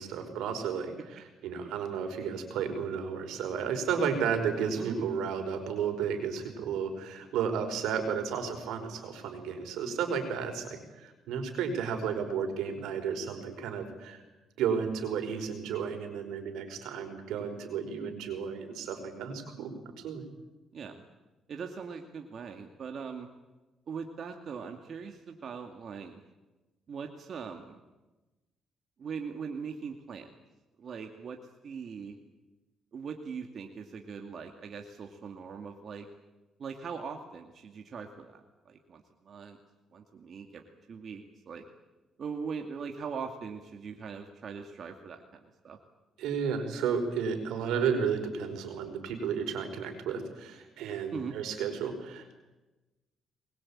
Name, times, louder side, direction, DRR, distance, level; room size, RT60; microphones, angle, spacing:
voice 1, 0.0-14.2 14.6-19.7 20.0-20.2 46.2-52.3, right 6 dB, 90° right, 6 dB, 5.1 m, -33 dB
voice 2, 4.8-5.2 20.7-21.0 21.5-23.3 23.9-26.2 26.9-27.8 29.0-30.3 30.8-31.4 31.6-32.2 32.9-36.1 36.6-38.4 38.7-39.6 39.9-40.6 40.9-41.7 42.2-45.8 51.1-51.3, right 6 dB, 55° right, 4 dB, 2.3 m, -41 dB
23.5 x 21.5 x 8.8 m, 1.1 s
cardioid pair, 90°, 0 cm